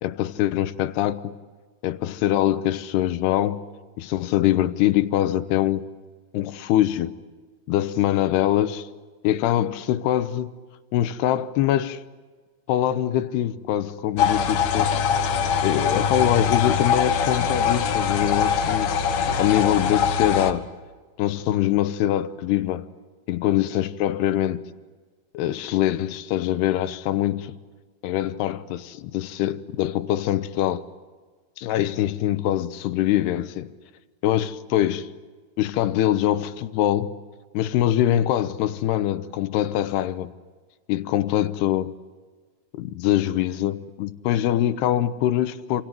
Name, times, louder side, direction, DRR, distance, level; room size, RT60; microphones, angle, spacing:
voice 1, 0.0-1.3 1.8-3.6 4.0-5.9 6.3-7.1 7.7-8.9 9.2-10.5 10.9-12.0 12.7-15.0 15.6-19.0 19.4-20.7 21.2-22.9 23.3-24.6 25.3-27.5 28.0-30.8 31.6-33.7 34.2-35.1 35.6-37.1 37.5-40.3 40.9-42.0 42.7-45.8, left 12 dB, 80° left, 3.0 m, -23 dB
sound 1, 14.2-20.5, left 6 dB, 60° left, 2.0 m, -22 dB
27.5 x 27.5 x 7.7 m
omnidirectional pair, 4.7 m